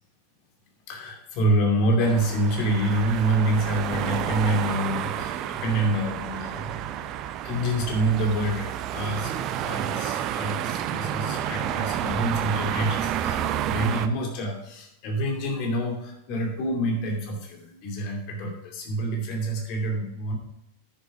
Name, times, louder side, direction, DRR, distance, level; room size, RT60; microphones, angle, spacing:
voice 1, 0.9-7.0 7.4-9.3 9.6-20.4, right 1 dB, 40° left, 1 dB, 2.5 m, -27 dB
sound 1, 2.0-14.1, right 10 dB, 35° right, 0.6 m, -30 dB
9.7 x 7.3 x 4.8 m, 0.82 s
figure-of-eight pair, 90°, 0 cm